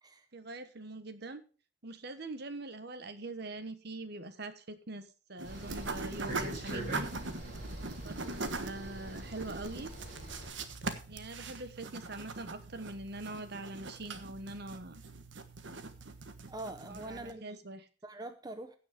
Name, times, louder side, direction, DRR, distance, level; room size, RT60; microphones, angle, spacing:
voice 1, 0.3-1.4 1.8-7.1 8.0-9.9 11.1-15.0 16.9-17.9, right 2 dB, 60° right, 11 dB, 1.3 m, -43 dB
sound 1, 5.4-10.5, right 1 dB, 45° right, 6.7 m, -43 dB
sound 2, 5.4-17.3, right 3 dB, 75° right, 1.4 m, -42 dB
voice 2, 16.5-17.6 18.0-18.8, right 1 dB, 20° right, 8 dB, 0.8 m, -43 dB
16.0 x 6.3 x 5.2 m, 0.38 s
head